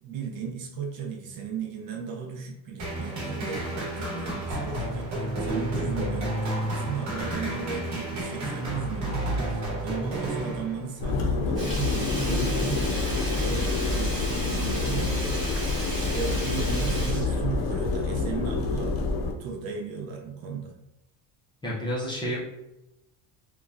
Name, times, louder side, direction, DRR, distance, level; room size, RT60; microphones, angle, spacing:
voice 1, 0.0-19.0 19.4-20.8, right 5 dB, 60° right, 1 dB, 0.6 m, -36 dB
sound 1, 2.8-11.1, right 1 dB, 40° right, 1.0 m, -31 dB
sound 2, 11.0-19.3, left 3 dB, 65° left, 0.6 m, -27 dB
Sink (filling or washing), 11.5-18.1 18.4-18.5, right 1 dB, 10° right, 1.0 m, -36 dB
voice 2, 21.6-22.4, equal, 10° left, -6 dB, 0.4 m, -30 dB
3.1 x 2.2 x 2.4 m, 0.91 s
cardioid pair, 160°, 41 cm